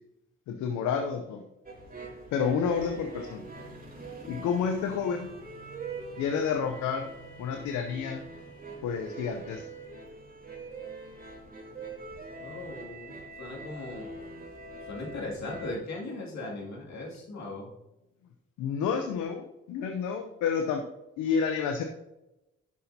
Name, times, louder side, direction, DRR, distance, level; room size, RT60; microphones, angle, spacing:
voice 1, 0.5-1.4 2.3-3.5 4.3-5.3 6.2-7.0 7.4-8.2 8.8-9.6 18.6-20.8 21.2-21.8, left 6 dB, 80° left, 5 dB, 0.7 m, -29 dB
sound 1, 1.7-15.8, right 3 dB, 30° right, 2.9 m, -43 dB
voice 2, 12.4-14.2 14.8-17.7, left 2 dB, 65° left, -3 dB, 2.5 m, -38 dB
11.5 x 6.3 x 2.8 m, 0.94 s
hypercardioid pair, 40°, 29 cm